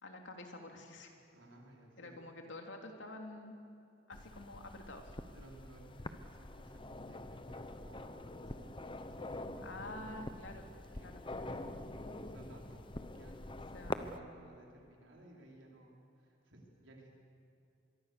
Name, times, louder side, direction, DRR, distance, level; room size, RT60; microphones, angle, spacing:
voice 1, 0.0-1.1 2.0-3.6 4.1-5.1 9.6-10.7 11.0-11.2 13.7-14.3, left 2 dB, 70° left, 3 dB, 2.9 m, -48 dB
voice 2, 1.3-2.2 5.3-9.7 10.9-17.1, right 1 dB, 80° right, -1 dB, 4.8 m, -58 dB
sound 1, 4.1-14.2, left 2 dB, 25° left, 0.8 m, -45 dB
24.5 x 22.5 x 6.8 m, 2.6 s
head